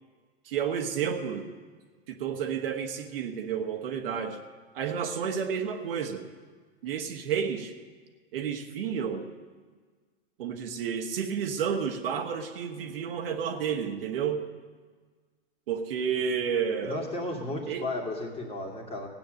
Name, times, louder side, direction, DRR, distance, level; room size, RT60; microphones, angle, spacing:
voice 1, 0.4-1.5 2.1-4.4 4.7-6.2 6.8-7.7 8.3-9.3 10.4-14.4 15.7-17.1 17.7-17.9, right 7 dB, 65° right, 4 dB, 1.5 m, -31 dB
voice 2, 16.8-19.1, left 2 dB, 20° left, 1 dB, 2.3 m, -34 dB
16.5 x 8.9 x 6.5 m, 1.5 s
hypercardioid pair, 115°, 31 cm